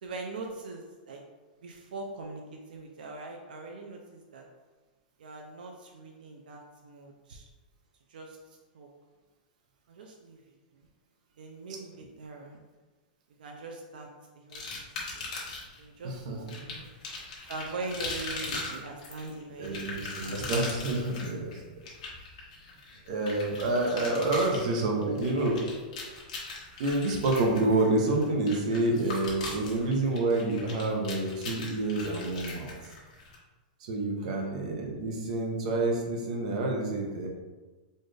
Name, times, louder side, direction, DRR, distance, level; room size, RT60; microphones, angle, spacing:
voice 1, 0.0-1.2 1.6-4.4 5.2-7.5 8.1-8.4 8.7-8.9 9.9-10.4 11.4-12.6 13.4-14.1 14.3-14.9 15.2-15.5 15.8-16.9 17.5-20.4 22.9-23.1 24.5-25.3 34.2-34.5, right 3 dB, 85° right, 1 dB, 0.5 m, -42 dB
sound 1, 14.5-15.8 16.5-33.3, left 3 dB, 55° left, 1.0 m, -40 dB
voice 2, 16.0-16.4 16.7-16.8 19.6-21.6 23.1-25.6 26.8-32.7 33.8-37.3, right 2 dB, 50° right, 1 dB, 0.7 m, -28 dB
4.2 x 2.5 x 3.2 m, 1.3 s
supercardioid pair, 170°, 5 cm